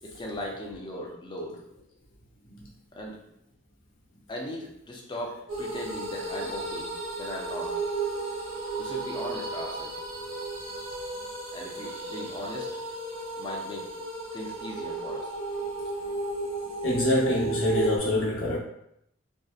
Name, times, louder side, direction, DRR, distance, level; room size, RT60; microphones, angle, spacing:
voice 1, 0.0-1.8 2.9-3.2 4.3-6.9 7.2-7.7 8.8-10.0 11.5-12.7 13.4-13.9 14.3-15.7 16.4-16.5, left 1 dB, 25° left, -2 dB, 0.5 m, -38 dB
sound 1, 5.5-18.0, right 3 dB, 75° right, 0.8 m, -34 dB
voice 2, 16.8-18.6, left 1 dB, 80° left, -4 dB, 0.8 m, -25 dB
2.6 x 2.0 x 2.3 m, 0.76 s
head